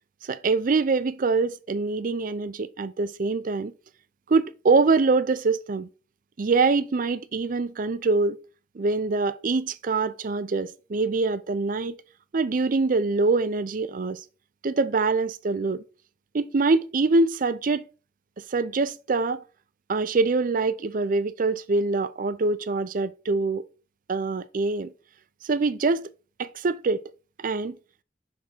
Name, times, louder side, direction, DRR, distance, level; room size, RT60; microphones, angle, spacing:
voice 1, 0.2-3.7 4.3-5.9 6.4-8.4 8.8-12.0 12.3-14.2 14.6-15.8 16.3-17.8 18.5-19.4 19.9-23.6 24.1-24.9 25.4-26.1 26.4-27.0 27.4-27.8, right 3 dB, 50° right, 0.5 m, -24 dB
6.1 x 3.6 x 5.6 m
head